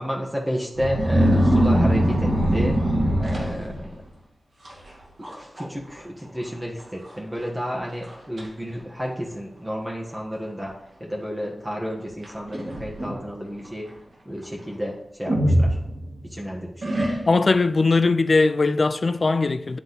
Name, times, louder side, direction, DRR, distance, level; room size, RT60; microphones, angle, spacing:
voice 1, 0.0-4.0 5.2-13.9 14.2-15.8 16.2-17.0, equal, 15° right, 1.4 m, -32 dB
sound 1, 0.7-4.0 4.7-4.9 5.2-5.7 5.9-6.0 6.8-6.9 7.4-7.5 8.0-8.5 9.3-9.4 12.2-13.2 15.3-16.3 16.8-17.6, equal, 75° right, 2.1 m, -22 dB
voice 2, 17.3-19.8, left 3 dB, 60° left, 0.4 m, -20 dB
9.7 x 3.4 x 4.1 m
cardioid pair, 45°, 0 cm